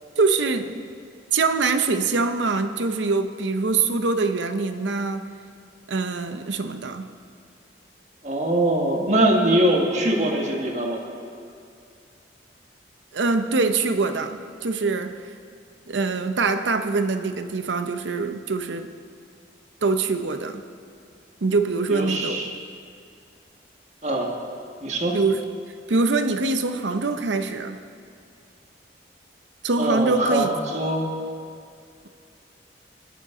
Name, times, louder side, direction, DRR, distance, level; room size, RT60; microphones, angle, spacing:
voice 1, 0.2-0.8 1.3-5.3 5.9-7.1 13.1-15.3 15.9-18.9 19.8-20.6 21.4-22.5 25.1-25.4 25.9-27.8 29.6-30.5, right 3 dB, 80° right, 0.7 m, -24 dB
voice 2, 8.2-11.1 21.9-22.4 24.0-24.3 24.8-25.2 29.8-31.1, right 1 dB, 40° right, 1.6 m, -22 dB
23.0 x 9.0 x 3.8 m
head